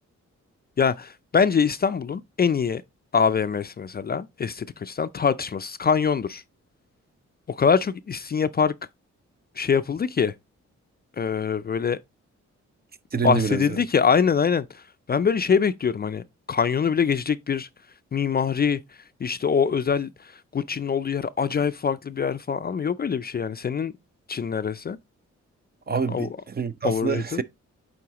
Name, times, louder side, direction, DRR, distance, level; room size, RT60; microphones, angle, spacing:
voice 1, 0.8-2.8 3.1-6.4 7.6-8.7 9.6-10.3 11.2-12.0 13.1-14.6 15.1-16.2 16.5-17.7 18.1-18.8 19.2-20.1 20.5-23.9 24.3-25.0 26.1-26.3 26.8-27.4, left 6 dB, 35° left, 0.4 m, -24 dB
voice 2, 13.1-13.8 25.9-27.4, right 6 dB, 35° right, 0.5 m, -27 dB
8.4 x 3.8 x 2.9 m
cardioid pair, 70°, 29 cm